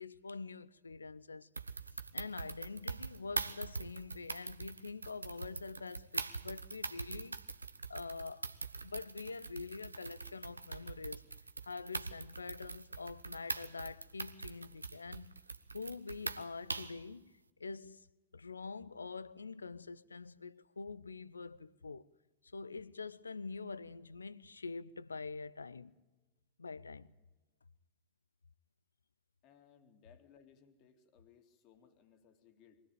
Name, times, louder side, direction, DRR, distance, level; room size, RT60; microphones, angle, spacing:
voice 1, 0.0-1.5 2.1-7.4 7.9-8.5 8.8-11.3 11.6-15.3 15.7-17.3 17.6-18.1 18.3-22.1 22.5-26.0 26.6-27.1, left 4 dB, 75° left, 0.6 m, -45 dB
sound 1, 1.6-17.0, right 4 dB, 80° right, 0.9 m, -43 dB
voice 2, 29.4-32.8, left 7 dB, 40° left, 2.4 m, -64 dB
23.0 x 17.0 x 9.1 m
figure-of-eight pair, 90°, 0 cm